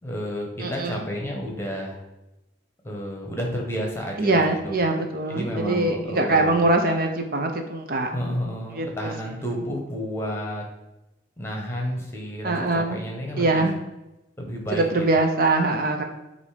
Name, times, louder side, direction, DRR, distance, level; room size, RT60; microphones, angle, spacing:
voice 1, 0.0-2.0 2.8-4.8 5.3-6.7 8.0-10.6 11.4-13.7 14.4-15.1, equal, 15° left, 1 dB, 1.1 m, -31 dB
voice 2, 0.6-1.0 4.2-8.1 8.8-9.1 12.4-13.0 13.4-13.7 14.7-16.0, right 2 dB, 50° right, 4 dB, 0.6 m, -23 dB
8.0 x 2.7 x 4.9 m, 0.98 s
head